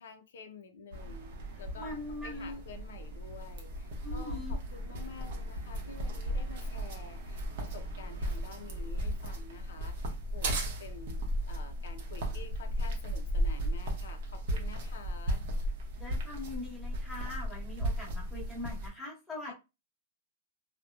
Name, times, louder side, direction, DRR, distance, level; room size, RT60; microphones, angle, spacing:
voice 1, 0.0-11.2 11.5-15.5 19.4-19.5, left 5 dB, 75° left, 0.4 m, -49 dB
sound 1, 0.9-18.9, equal, 55° right, 0.7 m, -35 dB
voice 2, 1.8-2.6 4.0-4.5 16.0-19.5, left 2 dB, 5° left, 0.9 m, -42 dB
2.8 x 2.1 x 2.2 m
supercardioid pair, 170°, 0 cm